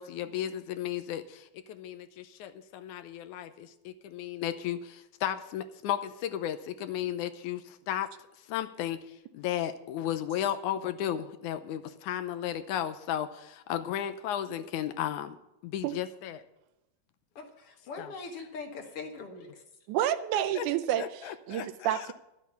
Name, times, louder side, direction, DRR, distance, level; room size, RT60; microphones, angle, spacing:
voice 1, 0.0-8.1 8.5-15.4 15.6-16.4 18.0-18.1 20.6-20.7 21.0-22.1, left 11 dB, 80° left, 10 dB, 2.1 m, -34 dB
voice 2, 17.4-19.5, left 4 dB, 55° left, 4 dB, 2.0 m, -41 dB
voice 3, 19.9-22.1, right 11 dB, 80° right, 12 dB, 2.0 m, -29 dB
12.0 x 8.5 x 6.9 m, 0.90 s
omnidirectional pair, 3.7 m